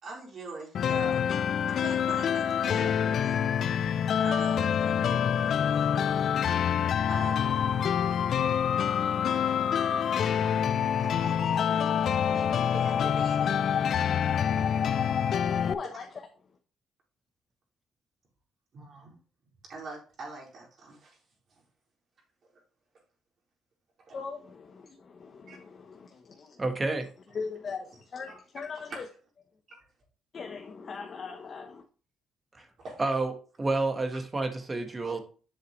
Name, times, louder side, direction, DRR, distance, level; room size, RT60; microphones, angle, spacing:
voice 1, 0.0-1.3 1.7-3.5 4.2-6.3 7.1-7.5 11.0-13.7 15.9-16.0 18.7-19.1 19.7-21.2 21.5-21.6 22.4-22.5 24.1-24.2 25.5-25.6 32.8-33.0 35.0-35.2, right 3 dB, 55° right, 4.2 m, -43 dB
sound 1, 0.7-15.7, left 8 dB, 65° left, 0.4 m, -26 dB
voice 2, 15.6-16.1 16.4-16.6 24.1-26.7 27.3-29.1 30.3-31.8, left 5 dB, 45° left, 1.0 m, -40 dB
voice 3, 26.6-27.1 32.6-32.7 33.0-33.3 33.6-35.2, right 2 dB, 25° right, 1.4 m, -29 dB
7.6 x 6.4 x 3.2 m
cardioid pair, 90°, 0 cm